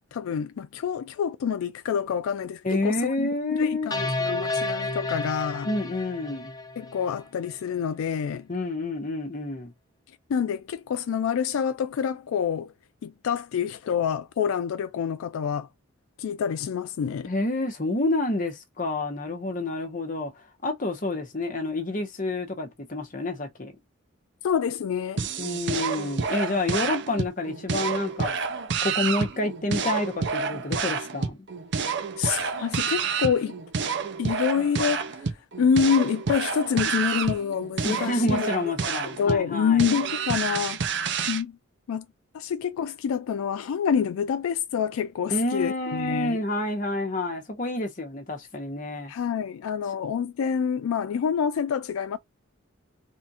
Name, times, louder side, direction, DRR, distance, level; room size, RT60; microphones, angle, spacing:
voice 1, 0.1-5.7 6.8-8.5 10.3-12.7 13.0-15.7 16.2-17.3 24.4-25.2 32.2-33.5 34.2-35.3 35.6-38.5 39.2-40.8 41.3-41.6 41.9-42.1 42.3-46.4 49.1-52.2, left 7 dB, 85° left, 0.3 m, -27 dB
voice 2, 2.6-3.9 5.7-6.5 8.5-9.7 17.2-20.3 20.6-23.7 25.4-28.4 28.8-31.4 37.8-39.8 45.3-49.1, left 2 dB, 40° left, 0.9 m, -28 dB
sound 1, 3.9-7.2, left 2 dB, 20° left, 0.7 m, -31 dB
sound 2, 25.2-41.4, right 5 dB, 55° right, 0.6 m, -29 dB
3.6 x 2.5 x 4.1 m
head